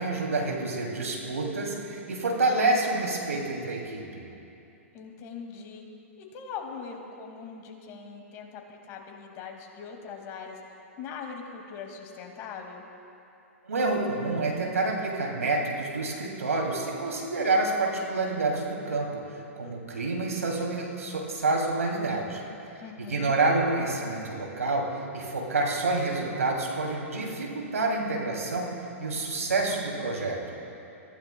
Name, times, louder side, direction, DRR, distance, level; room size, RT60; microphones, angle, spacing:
voice 1, 0.0-4.2 13.6-19.2 19.5-22.4 23.0-24.9 25.1-28.7 29.0-30.6, right 2 dB, 85° right, 0 dB, 2.8 m, -28 dB
voice 2, 4.9-5.8 6.2-10.6 11.0-12.9 22.8-23.3, left 6 dB, 35° left, 2 dB, 2.2 m, -41 dB
26.5 x 15.5 x 2.3 m, 2.8 s
hypercardioid pair, 115°, 8 cm